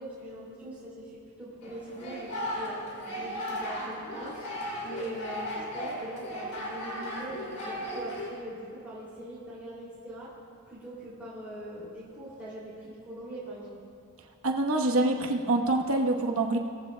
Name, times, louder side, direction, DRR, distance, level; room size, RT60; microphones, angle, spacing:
voice 1, 0.0-2.8 3.1-4.4 4.8-10.3 10.7-13.8, right 1 dB, 10° right, -10 dB, 2.6 m, -42 dB
sound 1, 1.6-8.3, equal, 85° left, 3.0 m, -36 dB
voice 2, 14.4-16.6, right 2 dB, 75° right, 2 dB, 1.1 m, -25 dB
19.5 x 15.0 x 2.2 m, 2.4 s
head